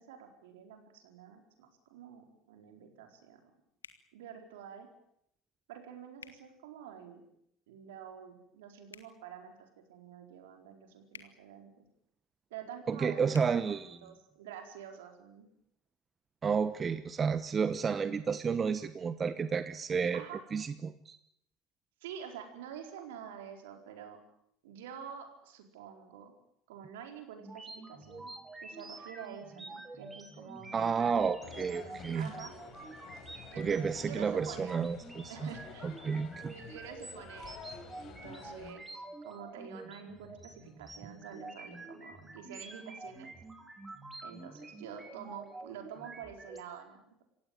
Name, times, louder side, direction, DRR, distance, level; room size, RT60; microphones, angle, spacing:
voice 1, 0.0-3.5 4.1-4.9 5.7-7.2 7.7-11.8 12.5-15.5 20.1-20.4 22.0-24.2 24.6-26.3 26.7-28.3 28.6-32.5 33.5-34.7 35.3-36.0 36.4-43.3 44.2-47.2, right 8 dB, 75° right, 4 dB, 4.4 m, -48 dB
sound 1, 3.8-4.0 6.2-6.4 8.9-9.1 11.1-11.3 13.3-13.5, left 7 dB, 85° left, 1.6 m, -50 dB
voice 2, 12.9-13.9 16.4-20.2 20.5-21.2 30.7-32.3 33.6-35.5 35.8-36.5, right 6 dB, 30° right, 13 dB, 1.1 m, -31 dB
sound 2, 27.4-46.6, right 2 dB, 15° right, 4.0 m, -48 dB
sound 3, 31.4-38.7, left 7 dB, 50° left, 4.4 m, -51 dB
27.0 x 16.5 x 9.1 m, 0.76 s
hypercardioid pair, 65°, 0 cm